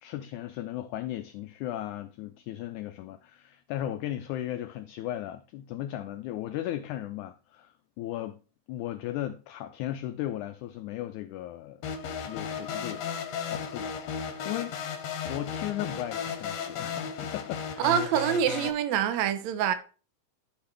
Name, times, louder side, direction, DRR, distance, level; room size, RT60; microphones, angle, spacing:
voice 1, 0.0-8.4 8.7-11.8 12.3-13.9 14.2-15.0 15.3-17.9, left 13 dB, 85° left, 1.7 m, -36 dB
sound 1, 11.8-18.7, left 7 dB, 65° left, 1.8 m, -35 dB
voice 2, 17.8-19.7, right 9 dB, 70° right, 1.8 m, -25 dB
12.5 x 5.5 x 3.3 m
omnidirectional pair, 4.0 m